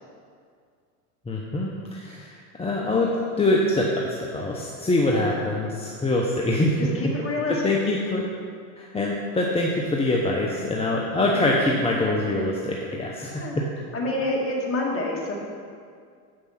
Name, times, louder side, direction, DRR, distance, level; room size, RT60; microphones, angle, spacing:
voice 1, 1.3-7.1 7.5-8.3 8.8-13.7, left 2 dB, 15° left, -2 dB, 0.8 m, -24 dB
voice 2, 6.8-7.6 11.0-11.5 13.2-13.6 13.9-15.3, left 2 dB, 30° left, -3 dB, 2.3 m, -28 dB
8.3 x 6.3 x 5.8 m, 2.2 s
supercardioid pair, 105°, 46 cm